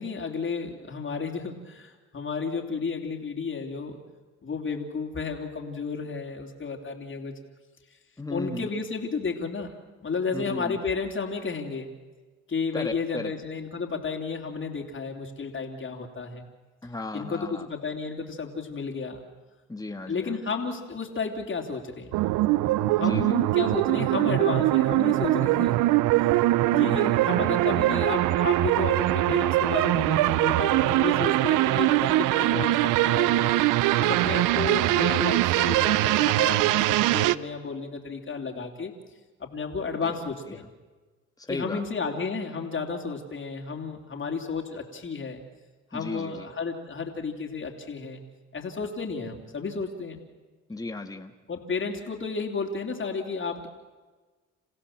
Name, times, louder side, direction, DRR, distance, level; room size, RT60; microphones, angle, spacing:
voice 1, 0.0-4.0 4.4-7.3 8.3-9.7 10.0-11.9 12.5-16.4 17.1-19.2 20.1-22.1 23.0-26.3 26.7-33.6 34.0-38.9 39.4-40.6 41.5-45.4 45.9-48.2 48.5-50.2 51.5-53.7, left 4 dB, 40° left, 1 dB, 3.4 m, -32 dB
voice 2, 8.2-8.7 10.3-10.8 12.7-13.3 16.8-17.7 19.7-20.4 23.0-23.4 26.7-27.1 40.0-40.1 40.5-40.6 41.4-41.8 45.9-46.5 50.7-51.3, left 2 dB, 10° left, 5 dB, 1.7 m, -35 dB
sound 1, 22.1-37.3, right 16 dB, 90° right, 0.6 m, -22 dB
28.0 x 15.5 x 7.5 m, 1.3 s
supercardioid pair, 70°, 31 cm